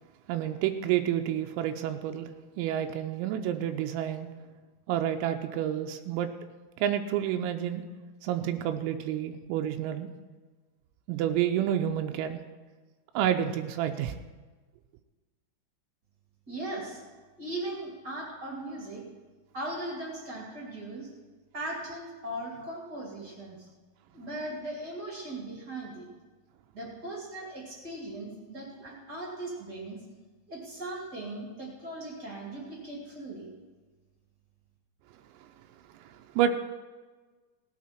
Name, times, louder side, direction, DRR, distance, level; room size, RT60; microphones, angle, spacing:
voice 1, 0.3-2.3 2.6-4.3 4.9-6.3 6.8-7.8 8.2-10.1 11.1-12.4 13.1-14.1 36.4-36.5, right 10 dB, 85° right, 6 dB, 3.3 m, -29 dB
voice 2, 16.5-17.0 17.4-19.0 19.5-21.1 21.5-23.7 24.1-26.1 26.7-30.0 30.5-33.5, right 1 dB, 35° right, -3 dB, 1.6 m, -38 dB
18.5 x 8.6 x 4.4 m, 1.3 s
omnidirectional pair, 6.0 m